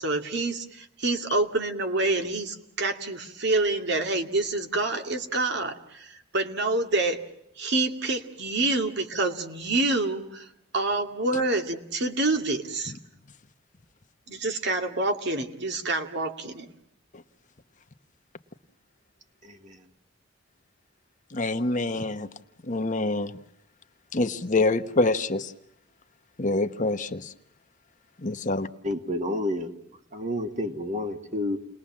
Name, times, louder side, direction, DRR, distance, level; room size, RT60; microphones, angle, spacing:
voice 1, 0.0-7.2 7.6-10.5 10.7-12.9 14.3-16.7, right 2 dB, 60° right, 5 dB, 2.4 m, -27 dB
voice 2, 19.4-19.8 28.8-29.7 30.1-31.6, left 1 dB, 40° right, 6 dB, 2.2 m, -30 dB
voice 3, 21.3-22.3 22.7-23.3 24.1-25.5 26.4-27.2 28.2-28.7, left 2 dB, 40° left, 9 dB, 1.2 m, -25 dB
30.0 x 20.5 x 7.4 m, 0.81 s
head